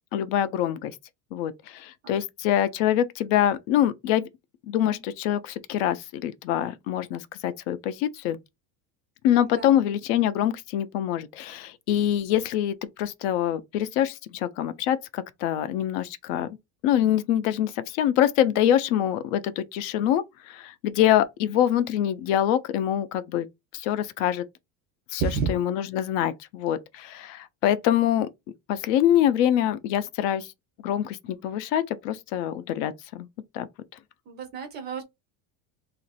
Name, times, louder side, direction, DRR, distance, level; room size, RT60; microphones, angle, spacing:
voice 1, 0.1-0.9 1.3-4.3 4.7-8.4 9.2-16.5 16.8-23.5 23.7-24.4 25.1-25.2 25.5-28.3 28.7-30.5 30.8-33.3 33.5-33.7, left 11 dB, 65° left, 0.5 m, -25 dB
voice 2, 25.2-25.5 34.3-35.0, right 6 dB, 25° right, 0.4 m, -30 dB
2.9 x 2.5 x 4.0 m
cardioid pair, 175°, 43 cm